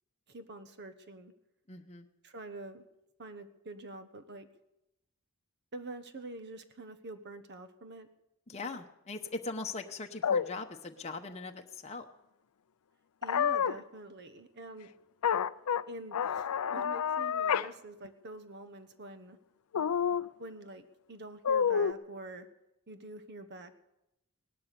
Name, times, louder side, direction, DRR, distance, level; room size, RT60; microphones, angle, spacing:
voice 1, 0.3-1.3 2.2-2.8 3.2-4.5 5.7-8.1 13.2-14.9 15.9-19.4 20.4-22.5 22.9-23.8, right 2 dB, 50° right, 10 dB, 1.2 m, -46 dB
voice 2, 1.7-2.1 8.5-12.1, left 3 dB, 30° left, 3 dB, 0.9 m, -40 dB
sound 1, 10.2-10.5 13.2-13.8 15.2-15.8 16.1-17.7 18.0-18.1 19.7-20.3 21.4-21.9, left 7 dB, 80° left, 0.5 m, -28 dB
18.0 x 11.5 x 6.9 m, 0.89 s
head